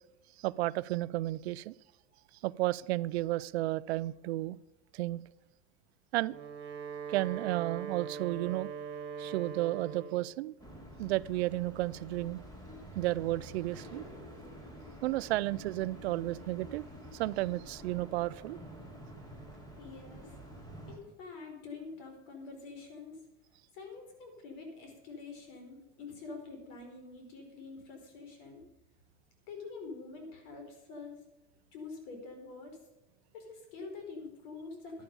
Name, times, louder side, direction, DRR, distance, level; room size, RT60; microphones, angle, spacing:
voice 1, 0.4-1.7 2.4-4.6 4.9-5.2 6.1-6.4 7.1-8.7 9.2-10.5 11.0-12.4 13.0-14.0 15.0-16.8 17.1-18.6, right 17 dB, 85° right, 0.5 m, -32 dB
Wind instrument woodwind instrument, 6.1-10.4, right 6 dB, 35° right, 1.9 m, -41 dB
sound 1, 10.6-21.0, equal, 10° left, 2.9 m, -49 dB
voice 2, 19.8-20.3 20.9-23.2 23.7-28.6 29.5-31.2 31.7-32.8 33.3-35.0, left 4 dB, 65° left, 4.6 m, -46 dB
11.5 x 11.5 x 5.4 m
supercardioid pair, 130°, 31 cm